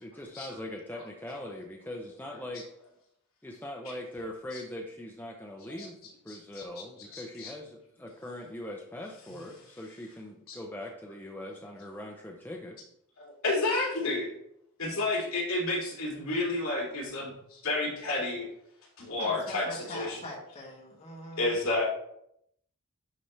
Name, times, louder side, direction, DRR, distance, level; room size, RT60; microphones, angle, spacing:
voice 1, 0.0-2.7 3.4-5.9 6.2-12.8, left 1 dB, 10° left, 0 dB, 0.6 m, -41 dB
voice 2, 6.3-6.6 7.0-7.5 10.5-10.6 13.2-14.3 14.8-18.5 19.0-20.2 21.4-21.9, left 2 dB, 65° left, -3 dB, 2.7 m, -31 dB
voice 3, 19.2-21.6, left 1 dB, 30° left, -4 dB, 2.1 m, -42 dB
11.0 x 4.3 x 3.3 m, 0.75 s
head